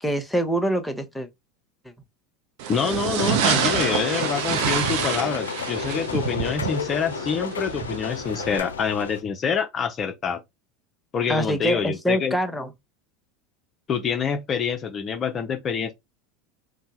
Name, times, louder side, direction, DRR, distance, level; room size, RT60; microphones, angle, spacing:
voice 1, 0.0-1.3 11.3-12.7, equal, 5° left, 0.8 m, -25 dB
sound 1, 2.6-8.6, right 8 dB, 60° right, 0.7 m, -27 dB
voice 2, 2.7-10.4 11.1-12.4 13.9-15.9, left 6 dB, 35° left, 0.6 m, -26 dB
sound 2, 3.2-9.2, left 5 dB, 85° left, 0.4 m, -32 dB
2.8 x 2.2 x 4.1 m
hypercardioid pair, 85°, 0 cm